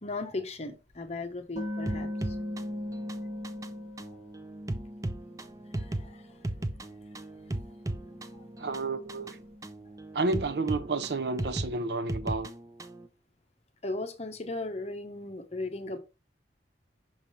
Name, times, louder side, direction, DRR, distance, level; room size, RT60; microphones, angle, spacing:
voice 1, 0.0-2.4 5.8-6.3 13.8-16.0, left 2 dB, 35° left, 0.9 m, -37 dB
sound 1, 0.9-1.0 1.6-6.2 6.5-11.4, left 1 dB, 45° right, 2.5 m, -41 dB
sound 2, 1.9-13.1, right 1 dB, 20° right, 0.5 m, -37 dB
voice 2, 8.6-9.4 10.1-12.5, right 3 dB, 65° right, 0.6 m, -30 dB
6.4 x 3.6 x 4.1 m
head